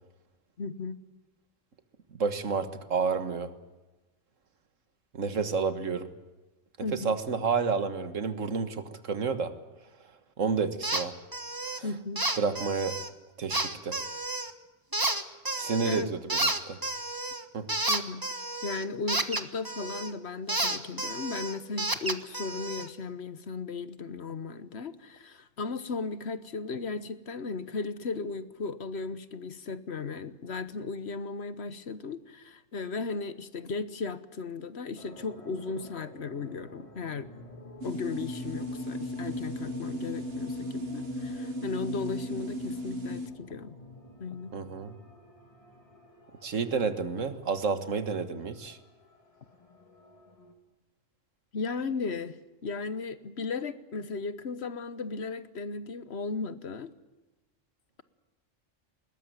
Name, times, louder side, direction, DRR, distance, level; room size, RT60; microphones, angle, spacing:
voice 1, 0.6-1.0 6.8-7.2 11.8-12.2 15.8-16.1 17.9-37.3 37.8-43.8 44.2-44.5 51.5-52.4 52.6-56.9, left 4 dB, 60° left, 13 dB, 1.4 m, -36 dB
voice 2, 2.1-3.5 5.1-6.1 6.9-9.5 10.4-11.2 11.8-11.9 12.4-12.9 13.4-14.0 15.5-16.8 17.5-17.7 44.5-44.9 46.4-48.8, right 5 dB, 85° right, 10 dB, 1.9 m, -30 dB
sound 1, 10.8-11.0 11.3-11.8 12.2-13.1 13.5-14.5 14.9-16.0 16.3-20.1 20.5-22.9, right 2 dB, 20° right, 1.3 m, -31 dB
sound 2, 35.0-50.5, left 1 dB, 25° left, 2.4 m, -47 dB
sound 3, 37.8-43.3, left 1 dB, 50° right, 1.6 m, -36 dB
21.0 x 19.5 x 9.2 m, 1.1 s
omnidirectional pair, 1.3 m